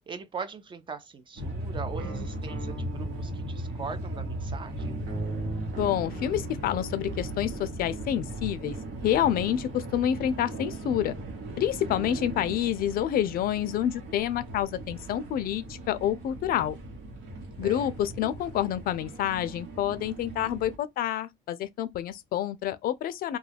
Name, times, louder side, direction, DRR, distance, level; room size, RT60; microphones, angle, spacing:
voice 1, 0.1-5.0 17.6-17.9, right 5 dB, 30° right, 0.4 m, -40 dB
sound 1, 1.4-20.8, right 1 dB, 80° right, 1.1 m, -38 dB
sound 2, 2.0-9.4, right 2 dB, 60° right, 1.0 m, -40 dB
voice 2, 5.7-8.8 9.0-11.2 11.6-16.8 17.6-23.4, left 11 dB, 60° left, 0.4 m, -28 dB
2.3 x 2.2 x 3.2 m
cardioid pair, 110°, 17 cm